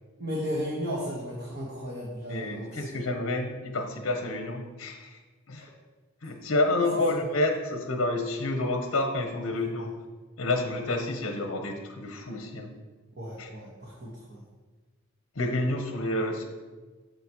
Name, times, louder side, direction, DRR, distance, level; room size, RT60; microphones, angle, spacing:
voice 1, 0.2-3.0 6.7-6.8 9.5-9.9 13.2-14.4, equal, 50° right, -5 dB, 1.3 m, -35 dB
voice 2, 2.3-5.2 5.5-5.7 6.2-9.9 10.4-12.7 13.4-13.5 15.4-16.4, left 2 dB, 65° left, 4 dB, 0.8 m, -29 dB
7.6 x 6.9 x 3.0 m, 1.3 s
head